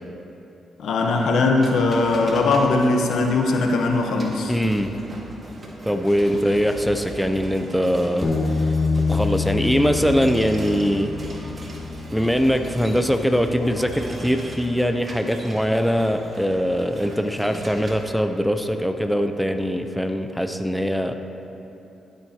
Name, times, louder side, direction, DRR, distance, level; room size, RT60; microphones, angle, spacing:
voice 1, 0.8-4.5, left 3 dB, 75° left, 2 dB, 0.9 m, -20 dB
sound 1, 1.6-18.0, right 1 dB, 40° right, 1.6 m, -39 dB
voice 2, 4.5-5.0 5.8-8.3 9.1-11.5 12.1-21.1, equal, ahead, 6 dB, 0.6 m, -22 dB
Bass guitar, 8.2-14.5, left 4 dB, 45° left, 1.4 m, -27 dB
16.0 x 7.8 x 2.9 m, 2.9 s
cardioid pair, 65°, 0 cm